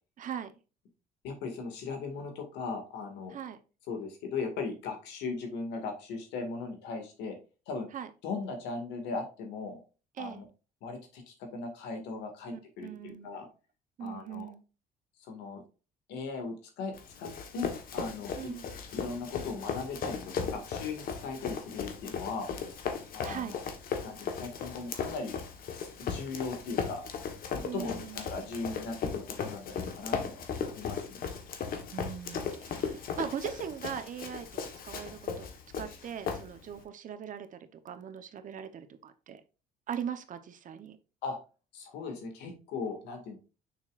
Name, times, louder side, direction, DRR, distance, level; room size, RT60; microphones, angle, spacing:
voice 1, 0.2-0.5 3.3-3.6 7.9-8.1 10.2-10.4 12.5-13.4 14.0-14.6 18.4-18.6 23.2-23.5 27.6-28.2 31.9-35.5 35.8-39.4 39.9-41.0, right 8 dB, 50° right, 9 dB, 1.0 m, -40 dB
voice 2, 1.2-3.4 3.9-7.4 7.7-7.9 8.2-9.8 10.2-10.5 10.8-13.5 14.0-14.5 15.2-15.6 16.1-18.6 18.9-22.5 23.1-23.6 24.0-25.3 25.7-27.1 27.5-30.4 30.7-31.2 41.2-41.4 41.7-43.4, left 4 dB, 85° left, 4 dB, 2.2 m, -38 dB
Run, 16.9-36.8, left 6 dB, 60° left, 1.4 m, -37 dB
6.9 x 5.8 x 2.5 m, 0.32 s
cardioid pair, 110°, 17 cm